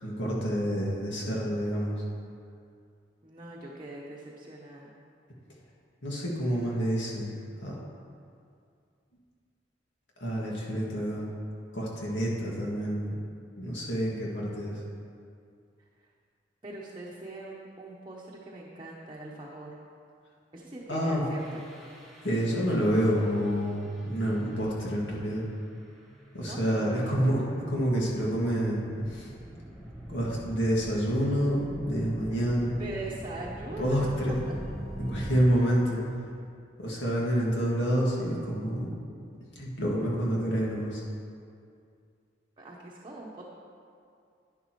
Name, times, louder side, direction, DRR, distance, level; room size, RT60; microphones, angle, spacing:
voice 1, 0.0-1.9 6.0-7.3 7.6-7.7 10.2-11.3 11.7-13.1 13.6-14.8 20.9-21.3 22.2-25.4 26.3-27.4 27.7-29.3 30.1-32.8 33.8-34.4 35.0-36.0 36.8-39.0 39.6-41.0, equal, 80° left, -4 dB, 2.1 m, -28 dB
voice 2, 3.2-4.9 16.6-19.8 20.5-21.6 26.4-27.2 28.5-28.6 32.8-34.1 42.6-43.4, right 2 dB, 25° right, -4 dB, 0.9 m, -42 dB
sound 1, 21.4-35.4, equal, ahead, 1.4 m, -44 dB
11.0 x 9.9 x 3.1 m, 2.4 s
head